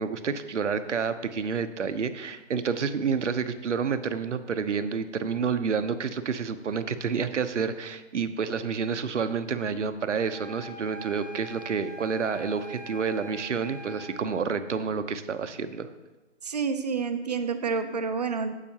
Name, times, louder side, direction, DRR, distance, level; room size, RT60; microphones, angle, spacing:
voice 1, 0.0-15.9, right 6 dB, 80° right, 11 dB, 0.9 m, -29 dB
sound 1, 10.1-14.3, right 2 dB, 10° left, 1.5 m, -44 dB
voice 2, 16.4-18.5, right 5 dB, 35° right, 8 dB, 0.6 m, -29 dB
12.0 x 8.3 x 2.8 m, 1.1 s
hypercardioid pair, 160°, 35 cm